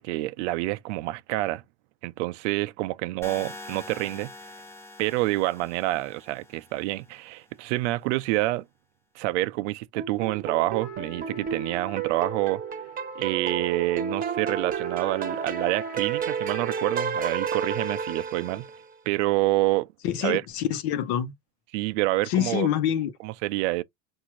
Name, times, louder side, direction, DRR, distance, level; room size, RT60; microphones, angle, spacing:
voice 1, 0.0-1.6 2.0-4.3 5.0-8.6 9.2-12.6 13.2-18.7 19.1-19.9 20.2-20.4 21.7-22.7 23.2-23.8, right 19 dB, 75° right, 0.5 m, -27 dB
sound 1, 3.2-7.2, left 2 dB, 10° left, 0.6 m, -44 dB
sound 2, 10.0-18.9, right 6 dB, 25° right, 0.8 m, -31 dB
Trumpet, 10.8-17.4, left 6 dB, 50° left, 0.8 m, -49 dB
voice 2, 20.0-21.3 22.2-23.1, left 11 dB, 70° left, 1.0 m, -26 dB
4.7 x 2.7 x 3.0 m
supercardioid pair, 120°, 35 cm